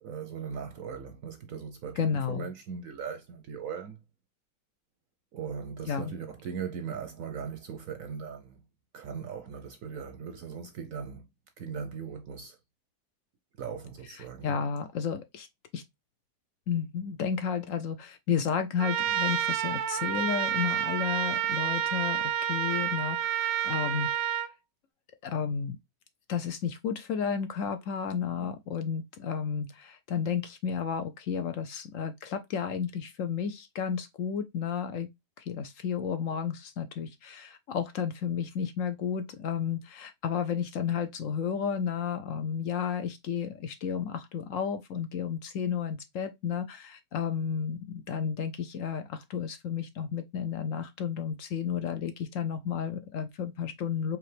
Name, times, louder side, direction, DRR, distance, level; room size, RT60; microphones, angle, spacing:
voice 1, 0.0-4.0 5.3-8.6 8.9-11.3 11.6-12.6 13.6-14.6, right 6 dB, 65° right, 0.9 m, -39 dB
voice 2, 2.0-2.5 5.9-6.1 14.4-15.5 15.7-15.8 16.7-24.1 25.2-25.8 26.3-35.1 35.4-54.2, left 7 dB, 70° left, 0.8 m, -32 dB
Trumpet, 18.8-24.5, right 10 dB, 85° right, 1.2 m, -29 dB
4.8 x 3.0 x 3.1 m
omnidirectional pair, 1.8 m